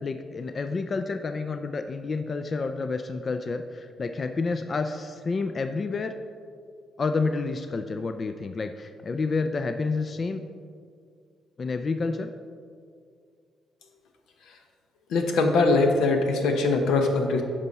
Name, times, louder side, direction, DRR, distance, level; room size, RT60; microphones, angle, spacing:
voice 1, 0.0-6.1 7.0-10.4 11.6-12.3, left 4 dB, 40° left, 8 dB, 0.4 m, -29 dB
voice 2, 15.1-17.4, left 3 dB, 85° left, 4 dB, 1.0 m, -22 dB
9.9 x 5.7 x 4.1 m, 2.2 s
cardioid pair, 90°, 0 cm